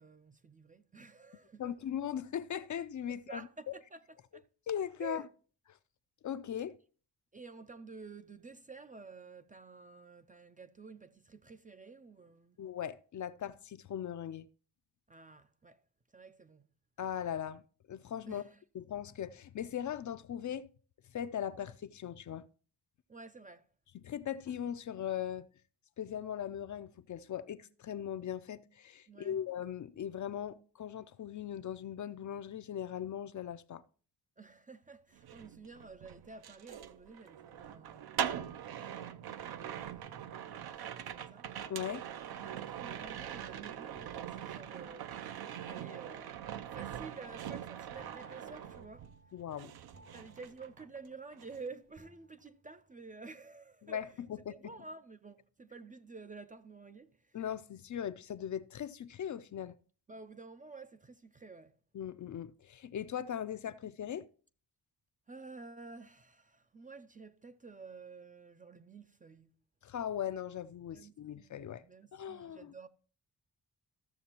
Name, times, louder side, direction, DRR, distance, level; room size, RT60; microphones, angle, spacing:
voice 1, 0.0-1.7 3.1-4.5 5.0-5.3 7.3-12.6 15.1-15.8 16.1-16.7 18.3-18.6 23.1-23.7 29.1-29.4 34.4-41.5 42.1-45.1 45.6-46.4 46.7-49.1 50.1-54.1 54.5-57.4 60.1-61.8 65.3-69.5 70.9-72.9, right 4 dB, 20° right, 0.4 m, -51 dB
voice 2, 1.6-3.5 4.7-5.2 6.2-6.8 12.6-14.5 17.0-18.4 18.7-20.7 21.1-22.5 23.9-25.5 26.0-33.8 41.7-42.0 49.3-49.7 53.8-54.6 57.3-59.8 61.9-64.3 69.8-71.8 72.1-72.7, left 9 dB, 50° left, 0.5 m, -39 dB
sound 1, 35.1-49.3 49.6-51.1 51.3-51.7, right 9 dB, 65° right, 0.6 m, -42 dB
sound 2, 40.0-41.2 44.0-45.6 48.0-51.5 52.0-52.9, right 1 dB, 35° right, 1.0 m, -62 dB
14.0 x 6.7 x 2.9 m
cardioid pair, 115°, 40 cm